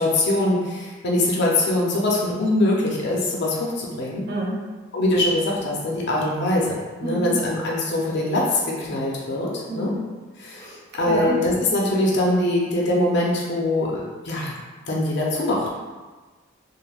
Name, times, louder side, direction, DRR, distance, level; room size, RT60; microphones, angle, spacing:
voice 1, 0.0-4.2 4.9-6.7 7.0-9.9 10.4-10.7 11.0-14.5 14.9-15.8, left 1 dB, 60° left, -3 dB, 0.5 m, -22 dB
voice 2, 4.3-4.6 7.0-7.4 9.7-10.0 10.5-11.4, right 1 dB, 55° right, -4 dB, 0.7 m, -29 dB
3.3 x 2.1 x 2.3 m, 1.3 s
head